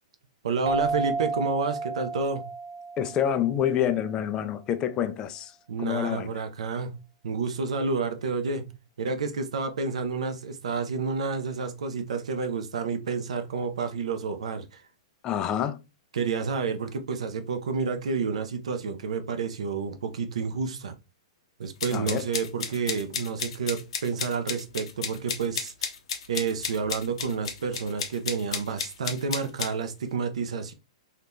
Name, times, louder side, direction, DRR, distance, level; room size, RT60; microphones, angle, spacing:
voice 1, 0.4-2.5 5.7-8.7 9.0-14.8 16.1-20.9 21.6-25.7 26.3-30.7, right 5 dB, 85° right, 0.6 m, -30 dB
sound 1, 0.7-4.0, right 4 dB, 45° right, 0.7 m, -32 dB
voice 2, 3.0-5.5 5.8-6.4 15.2-15.8 21.9-22.3, left 10 dB, 20° left, 0.3 m, -27 dB
sound 2, 21.8-29.7, left 6 dB, 70° left, 0.7 m, -33 dB
2.8 x 2.4 x 3.5 m
hypercardioid pair, 155°, 3 cm